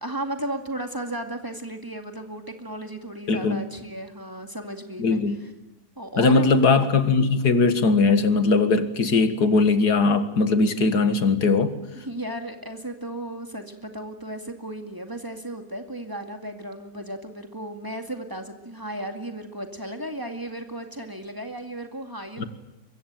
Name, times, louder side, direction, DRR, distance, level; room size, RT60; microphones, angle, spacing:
voice 1, 0.0-5.5 6.0-6.6 11.9-22.5, right 1 dB, 15° right, 2.2 m, -34 dB
voice 2, 3.3-3.6 5.0-5.4 6.2-11.7 22.4-22.5, left 4 dB, 80° left, 2.3 m, -20 dB
24.0 x 23.0 x 9.2 m
omnidirectional pair, 1.7 m